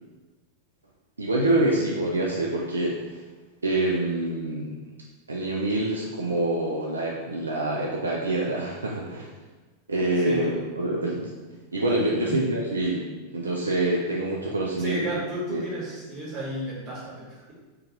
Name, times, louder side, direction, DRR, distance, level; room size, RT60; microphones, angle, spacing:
voice 1, 1.2-3.2 3.6-4.7 5.3-9.3 9.9-11.4 11.7-13.1 13.3-15.0 15.5-15.6, right 2 dB, 75° right, -3 dB, 0.3 m, -26 dB
voice 2, 10.1-10.6 12.1-12.4 14.8-17.5, equal, 35° right, -6 dB, 1.3 m, -33 dB
2.5 x 2.3 x 3.9 m, 1.3 s
figure-of-eight pair, 90°, 0 cm